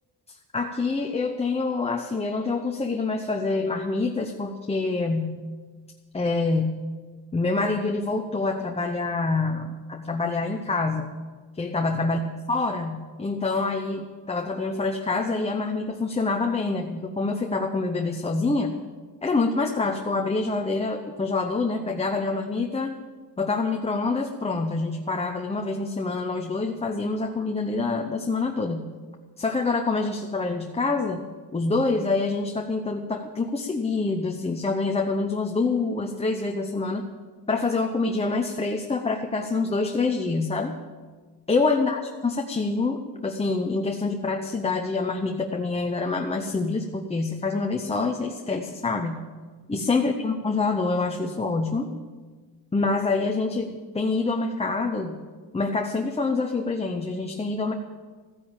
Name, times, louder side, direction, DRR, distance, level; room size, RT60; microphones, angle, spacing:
voice 1, 0.3-5.4 6.1-6.9 7.3-11.2 11.6-18.7 19.2-22.9 23.4-28.8 29.4-31.2 31.5-37.1 37.5-40.7 41.5-49.2 49.7-51.9 52.7-55.2 55.5-57.7, left 3 dB, 15° left, 3 dB, 0.8 m, -26 dB
15.0 x 10.5 x 7.2 m, 1.4 s
cardioid pair, 150°, 41 cm